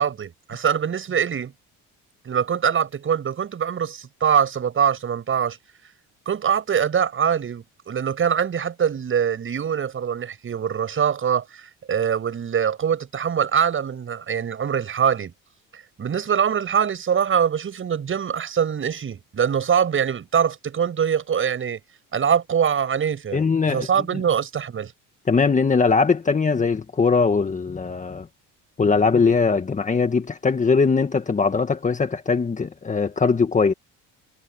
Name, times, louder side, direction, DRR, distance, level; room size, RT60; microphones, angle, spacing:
voice 1, 0.0-1.5 2.2-5.6 6.3-15.3 15.7-21.8 22.1-23.4 23.7-24.9, right 8 dB, 40° right, 7.8 m, -23 dB
voice 2, 23.3-23.9 24.1-24.2 25.3-28.3 28.8-33.7, left 4 dB, 25° left, 1.8 m, -20 dB
cardioid pair, 105°, 32 cm